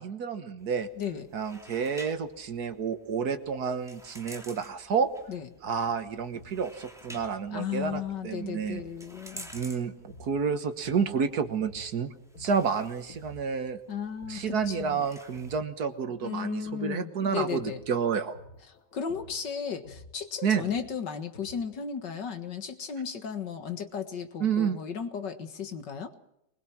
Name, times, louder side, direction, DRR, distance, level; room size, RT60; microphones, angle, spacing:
voice 1, 0.0-0.9 1.3-5.1 5.6-8.8 9.5-12.1 12.4-13.8 14.3-18.3 20.4-20.7 24.4-24.8, right 6 dB, 60° right, 9 dB, 1.7 m, -30 dB
sound 1, 0.6-15.6, equal, ahead, 2.7 m, -52 dB
voice 2, 1.0-1.3 5.3-5.5 7.5-9.5 13.9-15.0 16.2-17.8 18.9-26.1, left 7 dB, 70° left, 8 dB, 2.2 m, -35 dB
sound 2, 6.2-13.9 14.2-21.9, left 2 dB, 50° left, 2.3 m, -52 dB
22.5 x 21.0 x 6.0 m, 0.82 s
omnidirectional pair, 2.0 m